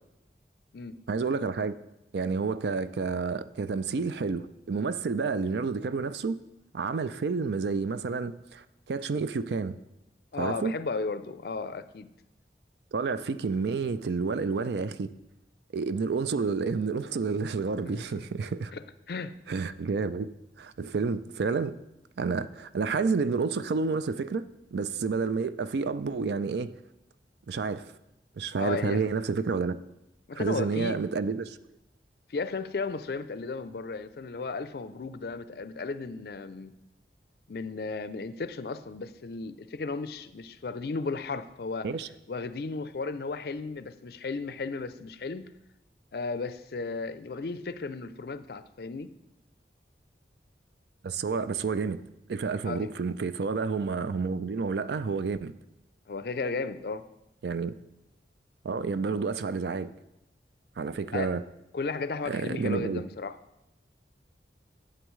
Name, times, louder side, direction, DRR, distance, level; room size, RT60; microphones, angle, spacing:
voice 1, 1.1-1.7 2.1-6.4 6.7-9.8 10.4-10.7 12.9-15.1 15.7-18.7 19.5-20.3 20.6-21.7 22.2-26.7 27.5-27.8 28.4-29.8 30.4-31.6 41.8-42.1 51.0-52.0 52.3-55.5 57.4-57.7 58.6-59.9 60.8-61.4 62.2-63.0, right 4 dB, 70° right, 0.4 m, -30 dB
voice 2, 10.3-12.1 17.8-18.0 18.7-19.4 28.6-29.1 30.3-31.0 32.3-36.7 37.5-41.9 42.3-45.5 46.1-49.1 52.6-52.9 56.1-57.0 61.1-61.3 61.7-63.4, left 4 dB, 60° left, 0.4 m, -34 dB
11.5 x 7.8 x 3.2 m
head